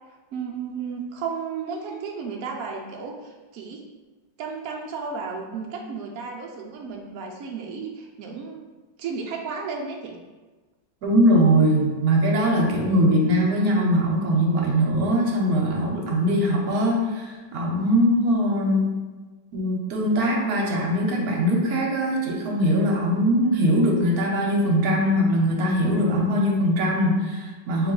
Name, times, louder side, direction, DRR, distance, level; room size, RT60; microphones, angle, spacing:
voice 1, 0.3-3.9 4.4-8.6 9.0-10.2, right 5 dB, 85° right, 0 dB, 0.7 m, -33 dB
voice 2, 11.0-19.0 19.5-27.9, equal, 60° right, -1 dB, 1.1 m, -21 dB
3.9 x 2.9 x 3.8 m, 1.3 s
omnidirectional pair, 2.1 m